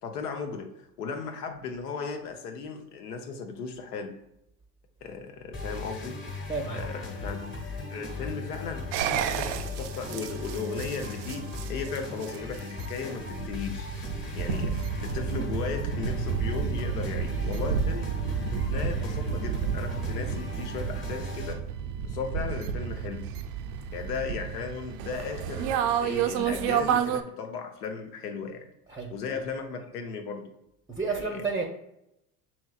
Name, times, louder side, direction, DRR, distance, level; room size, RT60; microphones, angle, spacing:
voice 1, 0.0-4.1 5.0-6.2 6.7-7.5 7.9-13.9 14.3-18.1 18.5-21.6 22.0-23.2 23.9-28.7 29.1-30.5 31.0-31.4, left 5 dB, 85° left, 5 dB, 0.8 m, -36 dB
sound 1, 5.5-21.5, left 3 dB, 25° left, 1.2 m, -37 dB
voice 2, 6.5-6.9 28.9-29.4 30.9-31.6, right 4 dB, 10° right, 2 dB, 0.6 m, -31 dB
sound 2, 8.9-27.2, right 8 dB, 60° right, 0.5 m, -31 dB
6.2 x 2.9 x 2.3 m, 0.82 s
hypercardioid pair, 75°, 46 cm